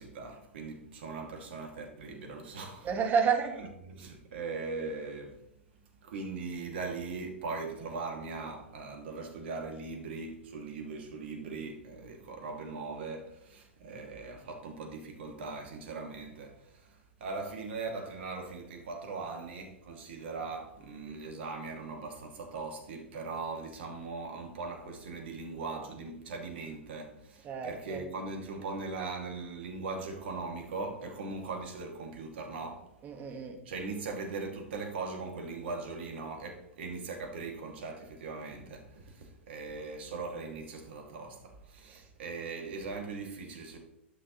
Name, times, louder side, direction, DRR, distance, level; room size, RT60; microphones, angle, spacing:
voice 1, 0.0-2.9 3.8-5.4 6.0-32.9 33.6-43.8, right 3 dB, 60° right, 2.3 m, -40 dB
voice 2, 2.8-3.6 27.4-28.1 33.0-33.6 41.9-42.1, right 6 dB, 30° right, 1.5 m, -30 dB
11.5 x 6.4 x 3.1 m
figure-of-eight pair, 100°, 7 cm